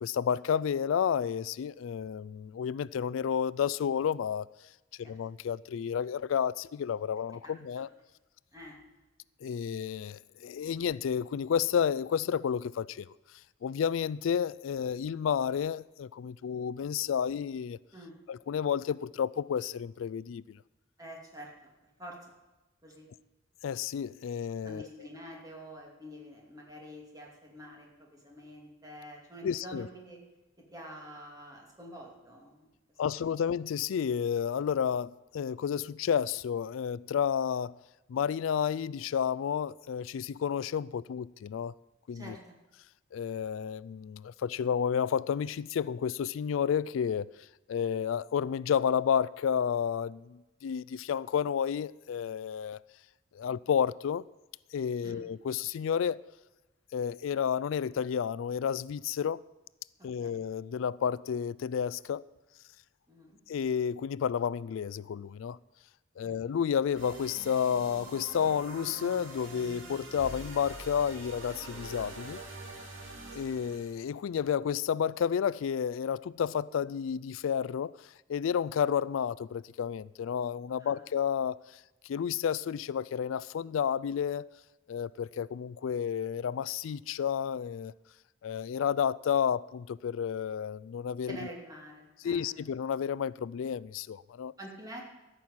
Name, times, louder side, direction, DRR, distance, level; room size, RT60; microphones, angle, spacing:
voice 1, 0.0-4.5 5.0-7.9 9.4-13.1 13.6-17.8 18.3-20.6 23.6-24.8 29.4-29.9 33.0-37.7 38.1-41.7 42.1-42.4 43.1-47.3 47.7-52.8 53.3-54.2 54.7-56.2 56.9-59.4 60.0-62.2 63.5-65.6 66.2-72.4 73.3-77.9 78.3-81.6 82.1-84.5 84.9-87.9 88.4-91.4 92.2-94.5, left 7 dB, 90° left, 0.3 m, -31 dB
voice 2, 7.1-7.8 8.5-8.8 17.9-18.2 21.0-21.7 22.0-22.2 22.8-23.1 24.6-30.2 30.7-32.7 33.2-33.3 42.1-42.6 55.0-55.2 60.0-60.4 63.1-63.4 66.2-66.4 80.8-81.0 91.3-92.6 94.6-95.0, equal, 20° right, 2.6 m, -47 dB
sound 1, 66.9-74.0, right 2 dB, 90° right, 2.7 m, -45 dB
13.5 x 6.2 x 8.8 m
head